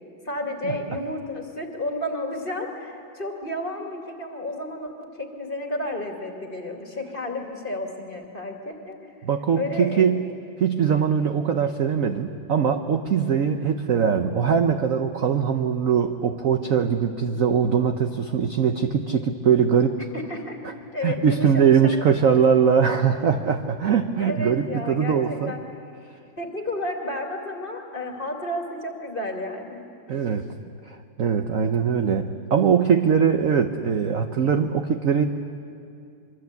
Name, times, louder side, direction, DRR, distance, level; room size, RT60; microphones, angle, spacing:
voice 1, 0.2-9.0 9.6-10.1 20.1-21.9 22.3-22.4 24.2-25.6 26.4-29.9, left 1 dB, 25° left, 2 dB, 2.4 m, -32 dB
voice 2, 9.2-10.3 10.6-20.0 21.0-25.5 30.1-30.5 30.9-35.2, right 7 dB, 55° right, 6 dB, 1.0 m, -21 dB
25.0 x 24.0 x 8.3 m, 2.4 s
omnidirectional pair, 2.2 m